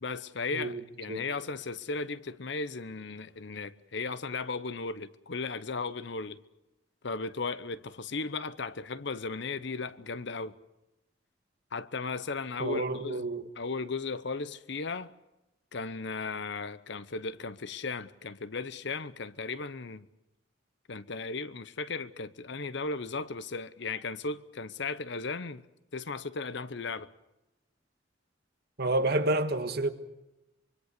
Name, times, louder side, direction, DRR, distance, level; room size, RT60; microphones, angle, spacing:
voice 1, 0.0-6.4 7.0-10.6 11.7-13.2 13.6-15.1 15.7-20.1 20.9-25.7 25.9-27.1, left 4 dB, 65° left, 0.9 m, -36 dB
voice 2, 12.6-13.5 28.8-29.9, right 2 dB, 55° right, 1.6 m, -29 dB
25.0 x 24.0 x 6.7 m
head